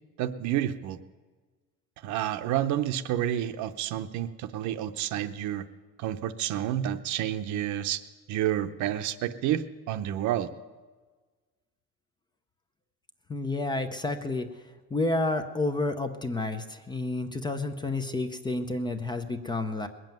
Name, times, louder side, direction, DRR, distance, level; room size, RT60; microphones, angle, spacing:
voice 1, 0.2-1.0 2.0-5.6 6.0-8.0 8.3-9.6 9.9-10.5, right 11 dB, 60° right, 11 dB, 0.8 m, -29 dB
voice 2, 13.3-14.5 14.9-19.9, left 2 dB, 15° left, 8 dB, 0.6 m, -30 dB
20.5 x 7.6 x 9.1 m, 1.4 s
cardioid pair, 175°, 34 cm